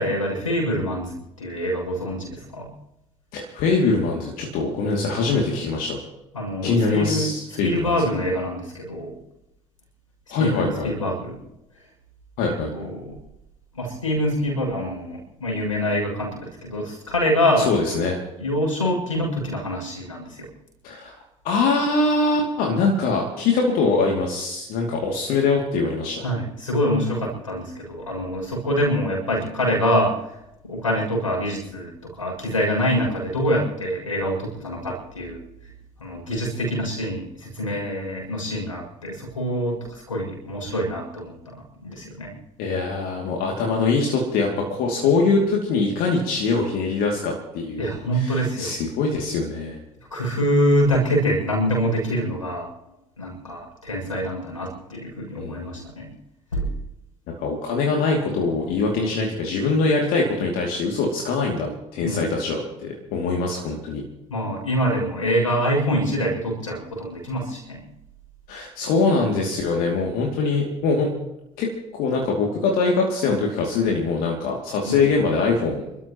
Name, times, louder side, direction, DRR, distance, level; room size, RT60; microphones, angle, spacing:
voice 1, 0.0-2.7 6.3-7.3 7.6-9.1 10.4-11.4 12.5-13.2 13.8-17.7 18.4-20.5 26.2-30.2 30.6-35.4 36.0-41.6 41.8-42.3 47.8-48.8 50.1-52.7 53.2-56.1 56.5-56.7 62.0-62.3 64.3-67.8 74.9-75.0, equal, 85° left, -1 dB, 6.8 m, -25 dB
voice 2, 3.3-6.0 6.6-8.1 10.3-10.9 12.4-12.7 17.6-18.2 20.8-21.2 21.4-26.2 42.6-49.8 55.4-55.8 57.4-64.0 68.5-71.1 71.6-75.8, left 3 dB, 60° left, 0 dB, 2.7 m, -23 dB
29.5 x 13.5 x 3.1 m, 0.89 s
figure-of-eight pair, 60°, 17 cm